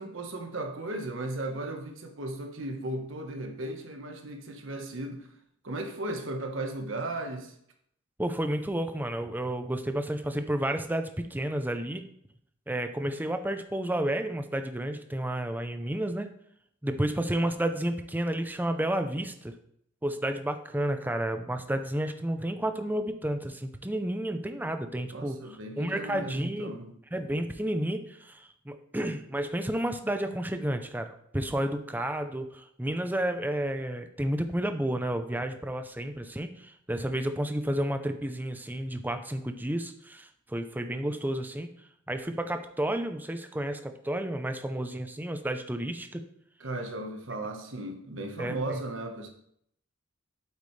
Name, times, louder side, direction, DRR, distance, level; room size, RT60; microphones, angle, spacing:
voice 1, 0.0-5.3 5.6-7.5 25.1-27.0 46.6-49.3, right 2 dB, 65° right, 1.4 m, -36 dB
voice 2, 8.2-12.0 12.7-16.3 16.8-19.5 20.0-26.7 27.1-46.2 48.4-48.8, right 1 dB, 10° right, 0.6 m, -31 dB
8.5 x 8.1 x 3.3 m
head